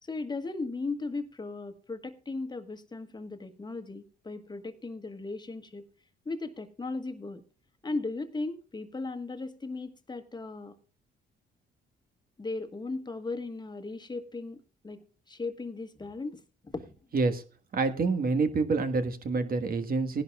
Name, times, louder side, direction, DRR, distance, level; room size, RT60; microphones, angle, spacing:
voice 1, 0.0-5.9 6.2-7.4 7.8-10.8 12.4-16.9, left 3 dB, 20° left, 9 dB, 1.4 m, -37 dB
voice 2, 17.7-20.2, right 4 dB, 50° right, 7 dB, 1.5 m, -27 dB
19.0 x 11.0 x 2.4 m, 0.35 s
cardioid pair, 90°, 20 cm